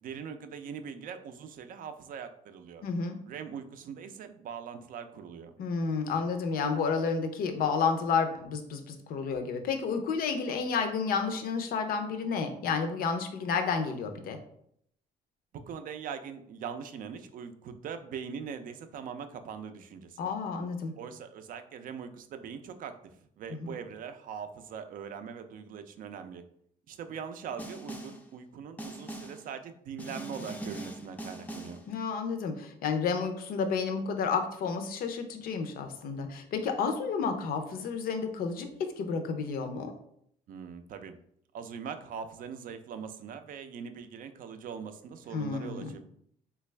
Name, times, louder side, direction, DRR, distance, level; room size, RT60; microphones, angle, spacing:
voice 1, 0.0-2.8 3.3-5.5 15.7-20.3 21.0-26.4 26.9-31.8 40.5-41.2 41.5-46.0, right 7 dB, 55° right, 8 dB, 0.4 m, -41 dB
voice 2, 2.8-3.2 5.6-14.4 20.2-20.9 31.9-38.7 39.0-39.9 45.3-45.9, left 5 dB, 60° left, 6 dB, 0.6 m, -31 dB
Snare drum, 27.6-28.3 28.8-29.5 30.0-31.9, right 1 dB, 10° left, 0.4 m, -41 dB
3.2 x 2.3 x 3.2 m, 0.69 s
cardioid pair, 110°, 17 cm